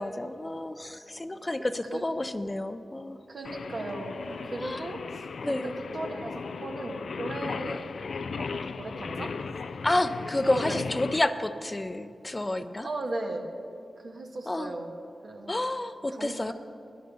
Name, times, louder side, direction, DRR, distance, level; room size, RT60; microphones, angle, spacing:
voice 1, 0.0-3.2 4.6-4.9 5.4-5.7 9.8-12.9 14.5-14.7 15.5-16.5, left 1 dB, 30° left, 11 dB, 0.6 m, -30 dB
voice 2, 3.3-9.4 10.4-10.8 12.8-13.5 14.0-14.9 15.2-15.6 16.1-16.5, right 2 dB, 65° right, 2 dB, 1.5 m, -37 dB
Singing, 3.4-11.2, left 5 dB, 75° left, 0.3 m, -36 dB
11.0 x 10.5 x 5.4 m, 2.6 s
cardioid pair, 40°, 0 cm